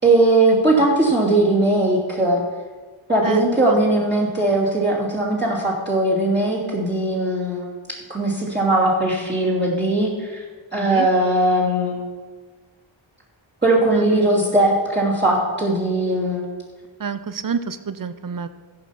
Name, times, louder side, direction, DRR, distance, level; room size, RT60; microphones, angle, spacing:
voice 1, 0.0-2.4 3.1-7.7 8.1-10.4 10.7-12.0 13.6-16.5, right 2 dB, 20° right, -7 dB, 2.9 m, -19 dB
voice 2, 10.7-11.1 13.9-14.3 17.0-18.5, right 6 dB, 40° right, 12 dB, 0.7 m, -28 dB
14.5 x 5.3 x 5.9 m, 1.4 s
wide cardioid pair, 45°, 50 cm